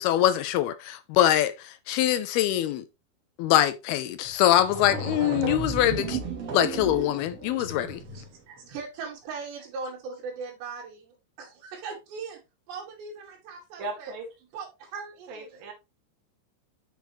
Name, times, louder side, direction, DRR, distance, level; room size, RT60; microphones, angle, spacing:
voice 1, 0.0-2.8 3.4-6.2 6.5-8.0, left 12 dB, 80° left, 2.4 m, -23 dB
sound 1, 4.2-4.3 4.6-8.3, right 4 dB, 45° right, 2.4 m, -33 dB
voice 2, 8.1-12.4 12.7-14.1 14.5-15.6, right 5 dB, 90° right, 4.5 m, -39 dB
voice 3, 13.8-14.3 15.3-15.7, right 2 dB, 60° right, 4.0 m, -36 dB
7.6 x 6.9 x 3.2 m
omnidirectional pair, 4.8 m